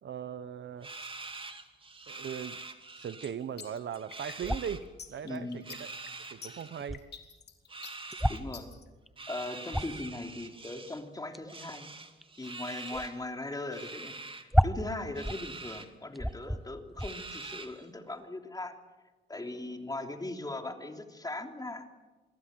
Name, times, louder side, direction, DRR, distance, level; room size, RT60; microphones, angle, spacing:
voice 1, 0.0-0.9 2.1-2.6 3.0-5.9 6.3-7.0, right 8 dB, 65° right, 14 dB, 1.1 m, -39 dB
sound 1, 0.8-3.3 3.6-4.8 5.5-6.9 7.7-8.4 9.2-11.0 11.5-13.2 13.7-14.4 15.2-15.9 16.3-16.4 17.0-17.9, right 3 dB, 25° right, 2.5 m, -45 dB
sound 2, 3.2-8.8, left 6 dB, 55° left, 3.5 m, -47 dB
sound 3, 4.4-4.8 6.0-6.1 6.3-6.4 6.7-7.0 8.1-8.5 9.1-9.2 9.4-10.1 11.3-11.5 12.2-12.5 12.9-13.1 13.5-13.6 13.9-14.0 14.5-15.5 15.8-15.9 16.1-16.6 16.9-17.1, equal, ahead, 1.0 m, -30 dB
voice 2, 5.2-5.6 8.3-8.7 9.3-11.9 12.4-14.1 14.4-18.7 19.3-21.9, left 2 dB, 20° left, 4 dB, 3.3 m, -39 dB
28.0 x 22.0 x 7.9 m, 1.2 s
cardioid pair, 100°, 20 cm